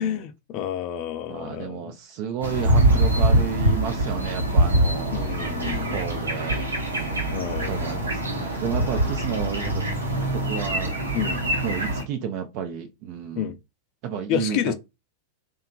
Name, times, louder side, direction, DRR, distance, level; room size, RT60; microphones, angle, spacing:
voice 1, 0.0-1.9 5.1-6.0 7.3-7.7 11.1-11.4 13.4-13.6 14.3-14.7, left 9 dB, 40° left, 0.4 m, -29 dB
voice 2, 1.3-5.5 5.9-9.9 10.3-11.0 11.6-13.5 14.0-14.7, right 7 dB, 45° right, 0.4 m, -32 dB
sound 1, 2.4-12.0, right 1 dB, 80° right, 0.7 m, -24 dB
2.8 x 2.2 x 2.5 m
figure-of-eight pair, 90°, 0 cm